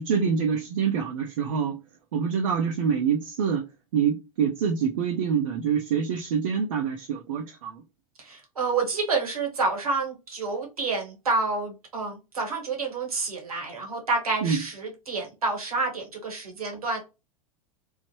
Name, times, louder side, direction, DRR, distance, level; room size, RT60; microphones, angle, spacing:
voice 1, 0.0-1.8 2.1-3.6 3.9-7.8 14.4-14.6, right 7 dB, 65° right, 0.6 m, -26 dB
voice 2, 8.2-17.0, right 3 dB, 80° right, 1.2 m, -29 dB
3.1 x 2.1 x 3.0 m
figure-of-eight pair, 90°, 19 cm